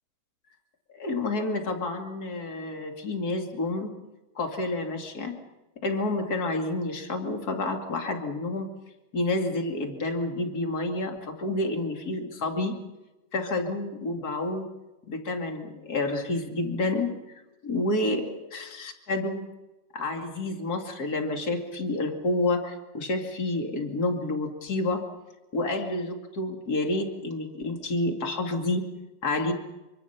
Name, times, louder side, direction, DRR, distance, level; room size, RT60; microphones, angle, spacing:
voice 1, 0.9-3.9 4.3-5.4 5.8-8.7 9.1-12.7 13.3-14.6 15.1-17.1 17.6-19.4 19.9-25.0 25.5-28.8 29.2-29.5, left 2 dB, 40° left, 3 dB, 1.2 m, -29 dB
26.0 x 25.0 x 5.9 m, 1.0 s
omnidirectional pair, 5.8 m